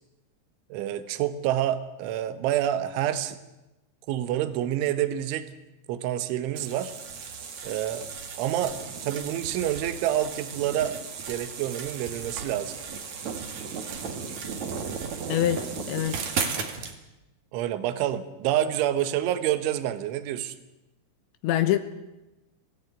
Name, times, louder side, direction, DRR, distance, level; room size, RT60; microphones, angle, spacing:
voice 1, 0.7-3.4 4.1-5.5 5.9-6.9 7.6-8.1 8.4-11.0 11.3-12.8 17.5-20.6, right 11 dB, 75° right, 11 dB, 3.6 m, -28 dB
sound 1, 6.6-16.9, right 6 dB, 50° right, 2.5 m, -35 dB
voice 2, 15.3-16.2 21.4-21.8, left 12 dB, 75° left, 11 dB, 3.1 m, -25 dB
23.0 x 17.0 x 9.4 m, 1.0 s
omnidirectional pair, 5.7 m